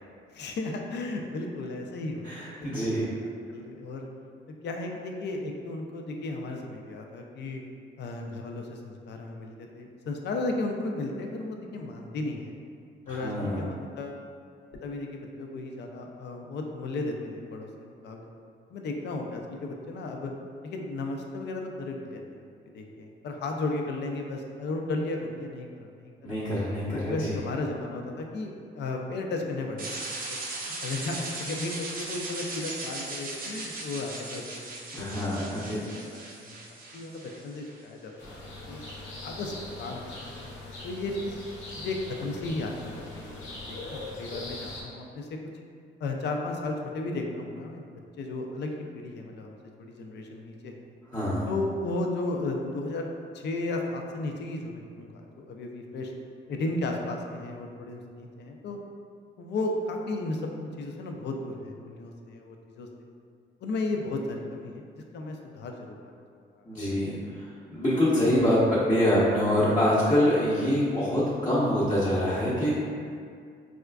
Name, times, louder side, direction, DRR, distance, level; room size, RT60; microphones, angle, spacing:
voice 1, 0.3-2.8 3.5-4.1 4.5-7.6 8.0-12.5 13.1-14.2 14.8-18.3 18.7-20.3 20.6-22.4 22.7-26.4 26.9-38.3 38.7-38.8 39.2-40.0 40.8-41.4 41.8-45.4 46.0-47.8 48.2-50.9 51.4-53.1 53.3-56.1 56.5-58.8 59.4-62.9 63.6-64.8 65.1-66.1 66.5-67.1, left 2 dB, 60° left, 2 dB, 0.4 m, -34 dB
voice 2, 2.2-3.1 13.1-13.6 26.2-27.3 34.9-35.8 51.1-51.5 66.6-72.8, equal, 20° left, -10 dB, 0.8 m, -25 dB
sound 1, 29.8-37.8, right 2 dB, 45° right, 0.5 m, -38 dB
sound 2, 38.2-44.8, left 2 dB, 85° left, 0.8 m, -41 dB
4.2 x 2.4 x 2.2 m, 2.2 s
cardioid pair, 90°, 20 cm